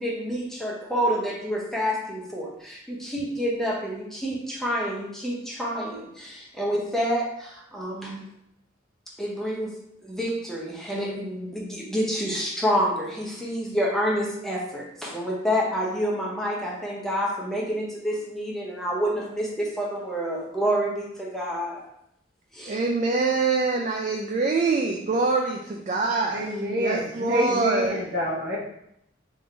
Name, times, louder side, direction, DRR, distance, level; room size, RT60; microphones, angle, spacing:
voice 1, 0.0-8.3 9.2-21.8 22.5-22.8, equal, ahead, 0.7 m, -28 dB
voice 2, 22.7-28.0, right 3 dB, 40° right, 0.4 m, -25 dB
voice 3, 26.3-28.6, equal, 55° right, 1.2 m, -27 dB
3.6 x 2.6 x 4.4 m
head